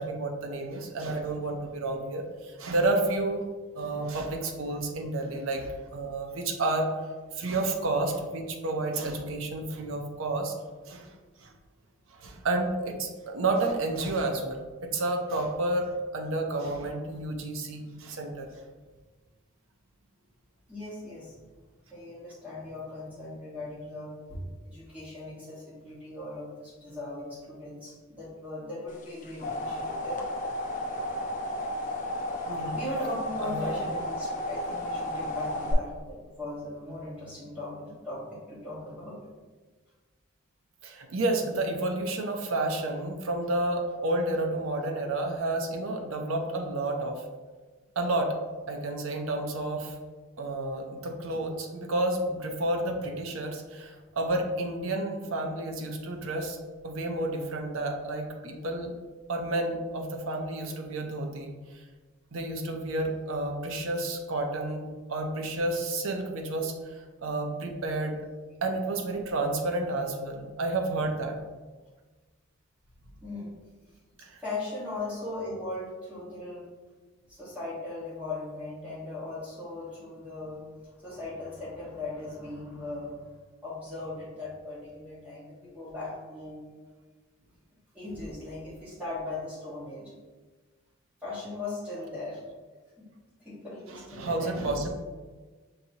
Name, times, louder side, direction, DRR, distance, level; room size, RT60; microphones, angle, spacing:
voice 1, 0.0-3.4 3.7-6.9 7.3-10.5 10.8-11.1 11.4-11.5 12.1-18.5 32.5-32.8 33.4-33.8 40.8-47.2 48.0-48.4 48.7-49.9 50.4-56.6 56.8-58.9 59.3-61.5 62.3-68.2 68.6-71.4 74.2-74.4 93.9-94.9, right 2 dB, 80° right, 3 dB, 0.6 m, -30 dB
voice 2, 20.7-21.4 21.9-30.2 32.7-39.2 73.2-73.5 74.4-76.7 77.3-83.3 83.6-86.6 87.9-90.1 91.2-92.5 93.0-93.1 93.4-94.8, left 2 dB, 5° right, -9 dB, 1.1 m, -38 dB
sound 1, 29.0-35.7, left 1 dB, 40° left, 0.5 m, -33 dB
5.6 x 2.8 x 2.7 m, 1.3 s
head